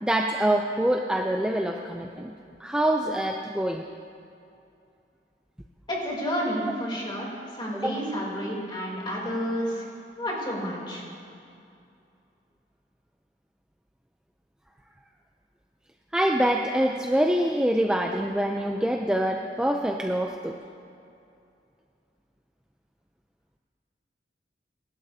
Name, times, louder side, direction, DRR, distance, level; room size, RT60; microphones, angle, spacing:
voice 1, 0.0-2.3 2.6-3.8 7.7-8.0 16.1-20.6, right 1 dB, 5° right, 2 dB, 0.4 m, -25 dB
voice 2, 5.9-9.9 10.2-11.0, equal, 25° left, -3 dB, 3.0 m, -30 dB
26.0 x 12.0 x 2.7 m, 2.6 s
head